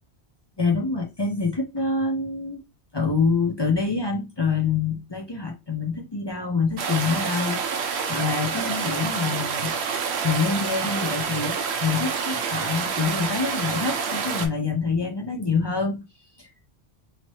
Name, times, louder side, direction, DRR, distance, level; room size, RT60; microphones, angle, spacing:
voice 1, 0.6-2.6 2.9-9.7 10.2-16.0 16.4-16.5, left 4 dB, 30° left, 0.5 m, -26 dB
sound 1, 6.8-14.5, right 6 dB, 80° right, 0.9 m, -28 dB
2.9 x 2.9 x 3.0 m
omnidirectional pair, 1.1 m